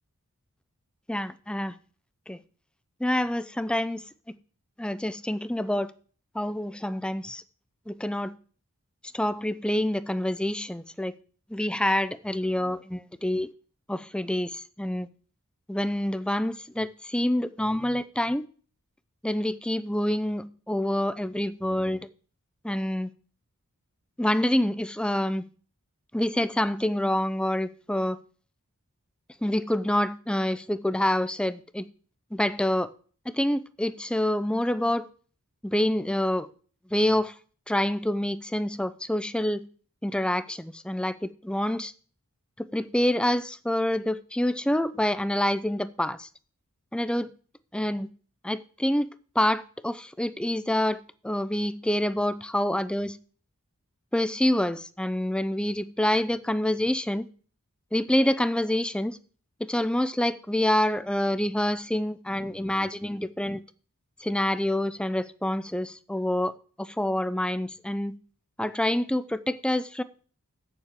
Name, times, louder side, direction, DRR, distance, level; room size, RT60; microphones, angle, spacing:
voice 1, 1.1-1.8 2.3-2.4 3.0-4.0 4.8-5.9 6.3-7.4 7.9-8.3 9.1-11.1 11.5-13.5 13.9-15.1 15.7-18.4 19.2-22.0 22.6-23.1 24.2-25.4 26.1-28.2 29.4-31.9 32.3-32.9 33.3-35.1 35.6-36.5 36.9-37.3 37.7-39.6 40.0-41.9 42.6-46.3 46.9-47.3 47.7-48.1 48.4-49.1 49.4-53.2 54.1-57.3 57.9-59.2 59.6-63.6 64.2-66.5 66.8-68.1 68.6-70.0, left 1 dB, 5° left, 0.5 m, -27 dB
7.4 x 7.2 x 6.6 m
head